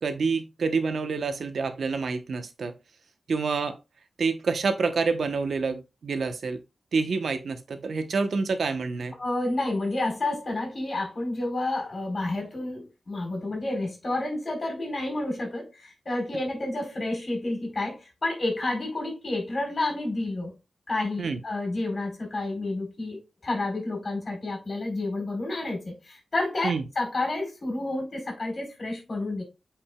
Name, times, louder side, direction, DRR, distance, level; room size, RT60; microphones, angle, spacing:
voice 1, 0.0-2.7 3.3-3.8 4.2-6.6 6.9-9.2 21.2-21.4 26.6-26.8, right 4 dB, 70° right, 1.0 m, -27 dB
voice 2, 9.2-20.5 20.9-29.4, left 2 dB, 40° left, 4.4 m, -30 dB
8.7 x 5.1 x 2.4 m
wide cardioid pair, 140°, 0 cm